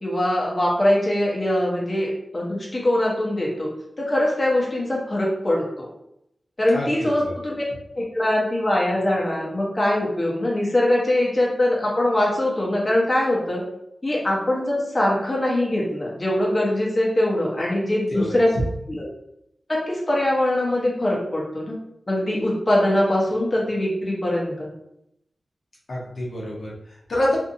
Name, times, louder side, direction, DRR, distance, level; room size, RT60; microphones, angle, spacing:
voice 1, 0.0-3.7 4.0-5.9 6.6-7.6 7.9-13.6 14.0-18.5 18.9-19.1 19.7-21.8 22.1-24.7, left 1 dB, 35° left, -4 dB, 0.9 m, -22 dB
voice 2, 6.7-7.3 18.1-18.6 25.9-27.4, left 1 dB, 75° left, -5 dB, 0.8 m, -27 dB
2.6 x 2.5 x 2.6 m, 0.79 s
wide cardioid pair, 70°, 0 cm